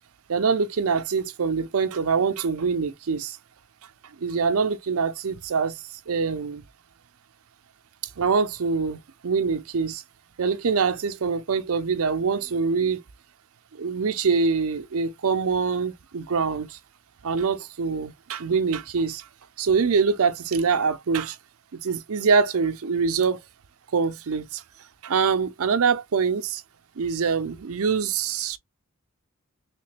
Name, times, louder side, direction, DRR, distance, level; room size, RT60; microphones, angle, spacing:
voice 1, 0.3-3.4 4.2-5.7 6.1-6.6 8.2-9.0 9.2-10.0 10.4-13.0 13.8-16.7 17.2-19.2 19.6-21.4 21.7-23.4 23.9-24.6 25.0-26.6 27.0-28.6, right 5 dB, 70° right, 0.5 m, -24 dB
3.2 x 2.9 x 3.3 m
head